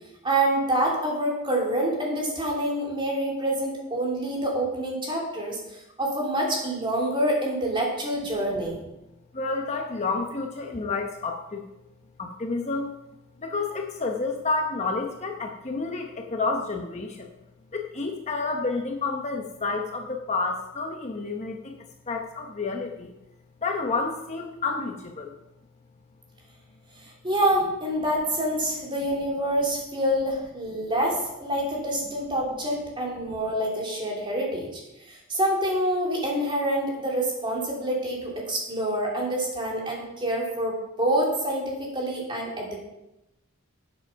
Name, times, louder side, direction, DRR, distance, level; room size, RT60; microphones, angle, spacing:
voice 1, 0.2-8.8 27.0-34.8 35.1-42.8, right 1 dB, 20° right, -3 dB, 3.1 m, -27 dB
voice 2, 9.3-11.7 12.2-13.0 13.4-17.3 17.7-23.1 23.6-25.3, left 3 dB, 30° left, 2 dB, 0.9 m, -30 dB
11.5 x 7.7 x 5.7 m, 0.94 s
head